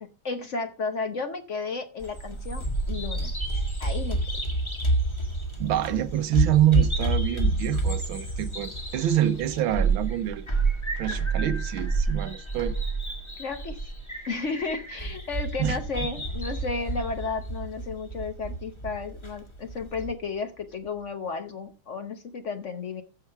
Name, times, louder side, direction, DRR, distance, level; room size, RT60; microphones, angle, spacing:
voice 1, 0.0-3.3 3.8-4.2 13.4-13.8 14.3-23.0, left 4 dB, 50° left, 0.9 m, -33 dB
Bird vocalization bird call bird song, 2.0-20.1, right 2 dB, 15° left, 1.6 m, -29 dB
voice 2, 5.6-10.5 11.0-12.8 15.6-15.8, right 12 dB, 75° right, 1.6 m, -26 dB
14.5 x 5.9 x 4.6 m
omnidirectional pair, 2.3 m